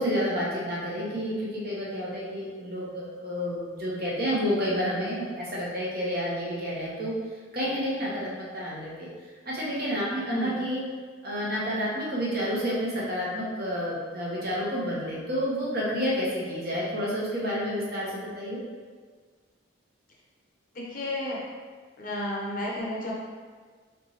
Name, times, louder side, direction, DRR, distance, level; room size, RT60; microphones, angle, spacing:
voice 1, 0.0-7.1 7.5-9.1 9.5-10.8 11.2-18.6, equal, 50° right, -6 dB, 1.0 m, -30 dB
voice 2, 10.2-10.6 20.7-21.4 22.0-23.1, left 1 dB, 45° left, -4 dB, 0.7 m, -31 dB
4.1 x 3.4 x 2.9 m, 1.6 s
head